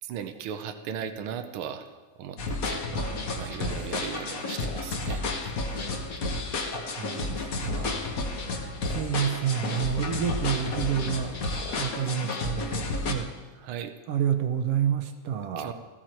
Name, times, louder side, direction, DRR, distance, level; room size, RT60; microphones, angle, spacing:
voice 1, 0.0-2.8 3.4-5.2 6.7-6.9 13.5-13.9 15.6-15.7, right 8 dB, 85° right, 7 dB, 1.2 m, -37 dB
sound 1, 2.4-13.1, left 3 dB, 70° left, 0.8 m, -31 dB
voice 2, 2.9-3.7 5.7-5.8 6.9-8.0 8.9-11.3 11.8-13.3 14.1-15.7, right 8 dB, 70° right, 8 dB, 1.5 m, -29 dB
sound 2, 4.6-4.8 5.7-5.8 6.6-7.0 7.7-7.9 8.8-9.0 10.6-10.9 11.5-11.8, left 2 dB, 50° left, 0.4 m, -43 dB
16.0 x 14.0 x 4.5 m, 1.3 s
omnidirectional pair, 3.5 m